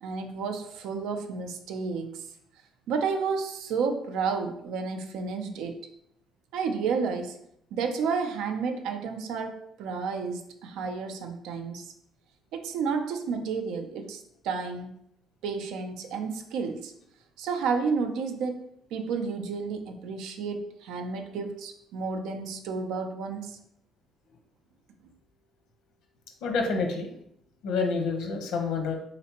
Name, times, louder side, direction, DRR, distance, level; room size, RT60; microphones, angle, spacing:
voice 1, 0.0-2.2 2.9-5.8 6.5-7.4 7.7-11.9 12.5-15.0 15.4-16.9 17.4-18.6 18.9-23.6, right 5 dB, 80° right, 5 dB, 0.5 m, -31 dB
voice 2, 26.4-27.1 27.6-28.9, left 4 dB, 75° left, 3 dB, 0.8 m, -28 dB
3.9 x 3.3 x 2.9 m, 0.72 s
cardioid pair, 160°, 0 cm